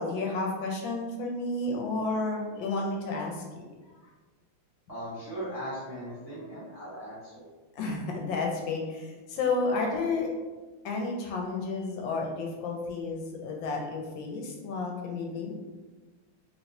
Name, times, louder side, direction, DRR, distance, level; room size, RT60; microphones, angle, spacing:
voice 1, 0.0-3.6 7.7-10.3 10.8-15.6, left 3 dB, 80° left, 0 dB, 1.4 m, -31 dB
voice 2, 4.9-7.4, equal, 15° right, -10 dB, 0.7 m, -38 dB
3.1 x 3.0 x 2.7 m, 1.3 s
omnidirectional pair, 2.1 m